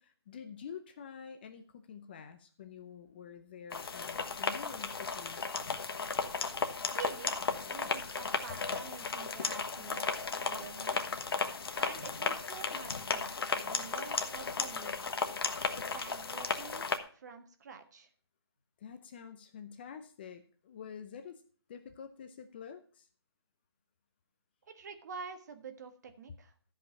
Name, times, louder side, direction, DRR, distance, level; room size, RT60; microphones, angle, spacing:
voice 1, 0.0-5.4 18.8-21.4 21.7-23.1, left 7 dB, 25° left, 8 dB, 0.6 m, -48 dB
sound 1, 3.7-17.0, left 5 dB, 60° left, 1.3 m, -35 dB
voice 2, 6.9-10.1 10.4-11.0 11.7-13.3 13.6-14.9 15.9-16.9 17.1-18.1 24.6-26.5, right 5 dB, 40° right, 7 dB, 1.5 m, -47 dB
13.5 x 5.2 x 5.8 m, 0.42 s
hypercardioid pair, 160°, 14 cm